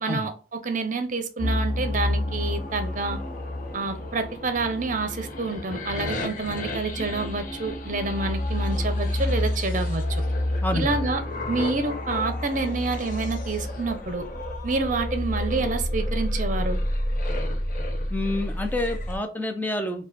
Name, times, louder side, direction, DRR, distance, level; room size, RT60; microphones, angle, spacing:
voice 1, 0.0-3.2 3.7-10.2 10.7-14.2 14.6-16.8, right 3 dB, 45° right, 9 dB, 0.7 m, -28 dB
sound 1, 1.4-19.2, left 1 dB, 50° left, 0.9 m, -29 dB
voice 2, 18.1-20.1, left 1 dB, 10° left, 7 dB, 0.6 m, -28 dB
4.7 x 2.3 x 4.1 m, 0.36 s
head